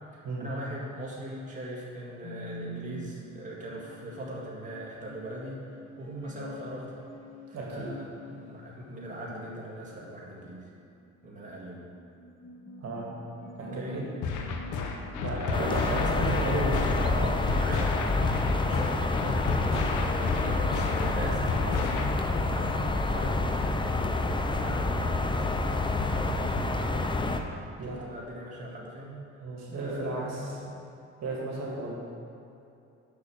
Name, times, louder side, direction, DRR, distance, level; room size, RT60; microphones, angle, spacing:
voice 1, 0.1-5.6 6.0-7.0 7.5-10.7 11.2-11.9 13.7-14.0 15.3-25.6 27.8-29.2 29.7-30.7, right 1 dB, 25° right, -5 dB, 2.0 m, -39 dB
sound 1, 2.2-18.9, right 1 dB, 45° left, 1.9 m, -48 dB
voice 2, 7.5-7.9 12.8-13.0 13.6-14.0 15.2-16.8 26.3-26.5 27.8-28.0 29.4-30.6 31.2-31.9, right 2 dB, 60° right, -4 dB, 2.1 m, -34 dB
sound 2, 14.2-22.2, left 4 dB, 90° left, 0.9 m, -32 dB
sound 3, 15.5-27.4, left 2 dB, 15° left, 0.6 m, -28 dB
7.1 x 6.2 x 6.3 m, 2.7 s
cardioid pair, 90°, 30 cm